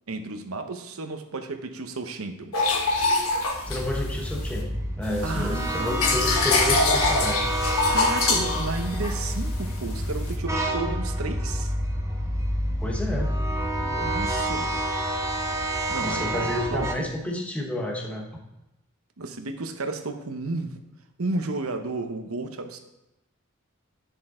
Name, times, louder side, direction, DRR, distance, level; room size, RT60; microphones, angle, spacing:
voice 1, 0.1-2.5 5.2-6.4 7.9-11.7 13.8-14.9 15.9-17.1 19.2-20.7 21.2-22.8, right 3 dB, 70° right, 6 dB, 0.9 m, -33 dB
sound 1, 2.5-4.6 5.0-10.3, left 3 dB, 75° left, 1.5 m, -25 dB
voice 2, 3.7-7.5 12.8-13.3 14.0-14.1 16.0-18.3, left 1 dB, 5° left, 0 dB, 1.0 m, -30 dB
sound 2, 3.7-16.9, equal, 15° right, 0.9 m, -28 dB
9.8 x 6.7 x 3.7 m, 0.95 s
head